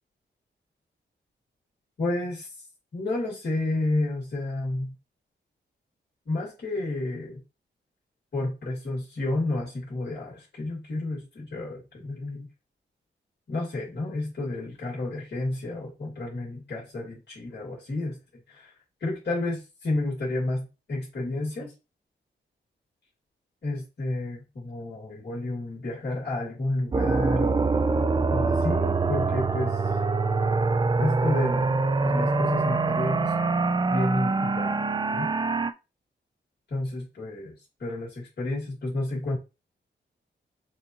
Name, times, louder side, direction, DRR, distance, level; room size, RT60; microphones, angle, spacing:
voice 1, 2.0-2.5 2.9-4.9 6.3-7.4 8.3-12.5 13.5-18.2 18.5-18.7 19.0-21.7 23.6-27.7 28.3-29.8 31.0-33.3 33.9-35.3 36.7-39.4, left 2 dB, 60° left, -5 dB, 2.2 m, -31 dB
sound 1, 26.9-35.7, right 3 dB, 25° right, 0.4 m, -24 dB
6.0 x 2.6 x 2.9 m, 0.28 s
cardioid pair, 75°, 20 cm